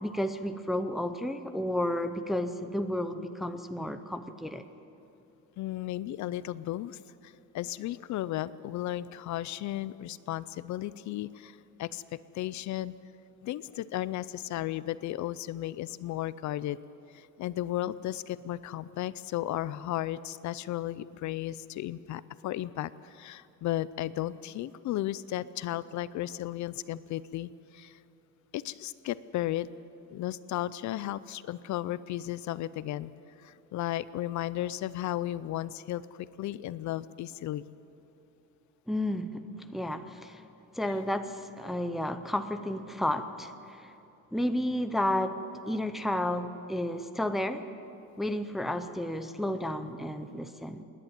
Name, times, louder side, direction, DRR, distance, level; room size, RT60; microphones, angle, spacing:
voice 1, 0.0-4.6 38.9-39.4 39.7-40.4 40.7-43.9 44.3-45.4 45.7-47.7 48.2-50.8, left 1 dB, ahead, 8 dB, 0.5 m, -32 dB
voice 2, 5.6-12.0 12.3-12.9 13.4-16.8 17.1-28.0 28.5-29.7 30.1-33.1 33.4-37.7 40.8-40.9, left 14 dB, 55° left, 17 dB, 0.5 m, -34 dB
27.0 x 11.0 x 9.2 m, 2.8 s
cardioid pair, 180°, 34 cm